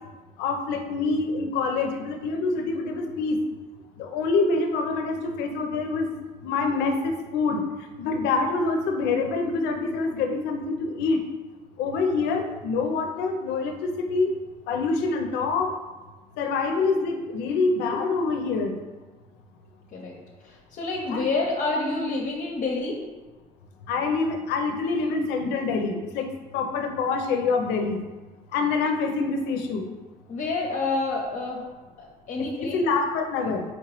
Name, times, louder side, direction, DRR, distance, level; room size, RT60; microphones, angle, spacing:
voice 1, 0.4-3.4 4.0-6.1 6.4-7.6 8.0-11.2 11.8-14.3 14.7-15.7 16.4-18.8 21.1-21.3 23.9-28.0 28.5-29.8 32.6-33.6, left 4 dB, 90° left, 5 dB, 0.5 m, -26 dB
voice 2, 20.4-23.0 30.3-31.7 32.0-32.8, left 3 dB, 50° left, -1 dB, 0.6 m, -28 dB
4.2 x 3.0 x 3.0 m, 1.3 s
cardioid pair, 110°, 17 cm